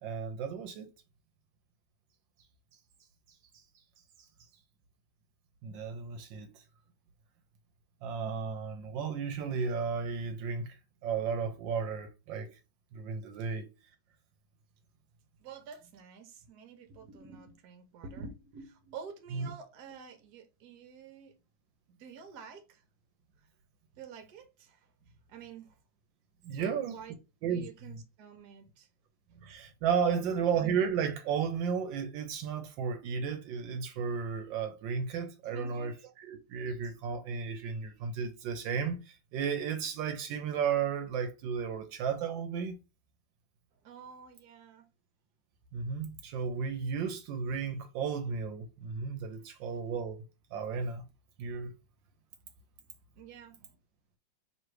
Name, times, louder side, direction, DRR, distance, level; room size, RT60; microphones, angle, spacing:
voice 1, 0.0-0.9 5.6-6.5 8.0-12.6 12.9-13.7 19.3-19.5 26.4-27.0 27.4-27.6 29.3-42.8 45.7-50.2 50.5-51.0 51.4-51.7, right 6 dB, 80° right, 1.3 m, -33 dB
voice 2, 15.4-21.4 21.9-22.8 23.4-23.5 24.0-24.9 25.3-25.8 26.6-27.2 27.5-28.9 30.1-30.5 35.5-35.9 43.8-44.9 49.5-49.6 53.2-53.7, right 6 dB, 65° right, 1.3 m, -49 dB
3.1 x 3.0 x 4.6 m
omnidirectional pair, 2.0 m